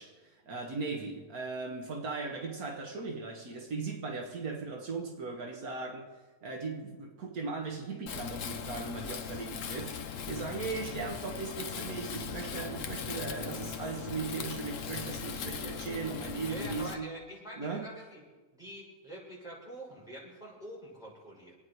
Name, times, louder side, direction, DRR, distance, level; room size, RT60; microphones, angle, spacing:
voice 1, 0.0-6.1 6.4-17.1 17.6-17.9, right 4 dB, 75° right, 1.9 m, -38 dB
Wind, 8.1-16.9, left 7 dB, 60° left, 1.1 m, -39 dB
voice 2, 16.5-18.2 18.5-21.5, equal, ahead, 6.3 m, -45 dB
27.0 x 9.5 x 4.7 m
omnidirectional pair, 1.6 m